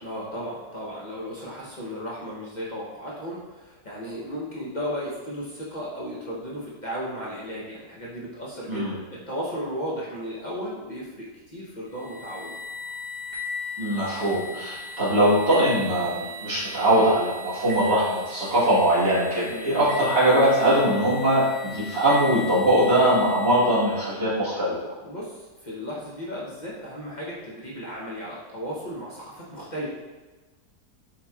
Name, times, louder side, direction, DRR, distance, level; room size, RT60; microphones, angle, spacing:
voice 1, 0.0-9.0 9.3-12.6 19.5-19.9 25.0-29.9, equal, 40° left, -6 dB, 0.6 m, -35 dB
sound 1, 11.9-24.0, left 2 dB, 40° right, 1.0 m, -37 dB
voice 2, 13.8-24.8, right 1 dB, 75° right, -10 dB, 2.1 m, -21 dB
7.6 x 2.9 x 2.3 m, 1.2 s
omnidirectional pair, 1.7 m